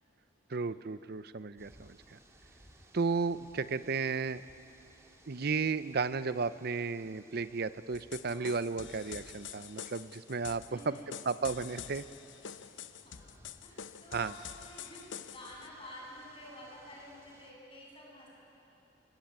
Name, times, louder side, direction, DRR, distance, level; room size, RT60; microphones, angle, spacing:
voice 1, 0.5-2.2 2.9-4.4 5.3-12.0 14.1-14.3, right 4 dB, 55° right, 14 dB, 0.7 m, -34 dB
sound 1, 1.6-17.5, right 1 dB, 15° right, 2.3 m, -62 dB
sound 2, 7.9-15.7, left 8 dB, 80° left, 0.8 m, -47 dB
voice 2, 10.7-11.2 13.0-18.3, left 1 dB, 30° left, -3 dB, 7.5 m, -51 dB
25.5 x 23.5 x 9.4 m, 3.0 s
head